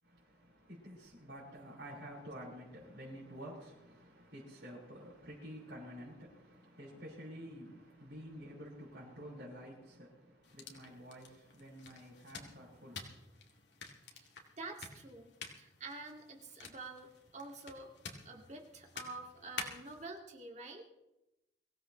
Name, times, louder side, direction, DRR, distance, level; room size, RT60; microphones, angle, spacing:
voice 1, 0.0-13.4, equal, 60° right, -8 dB, 6.0 m, -50 dB
sound 1, 10.4-20.0, left 5 dB, 70° left, 2.2 m, -50 dB
voice 2, 14.6-15.3 15.6-17.9 18.3-20.9, right 3 dB, 40° right, 1 dB, 2.2 m, -48 dB
23.5 x 16.5 x 3.1 m, 0.94 s
head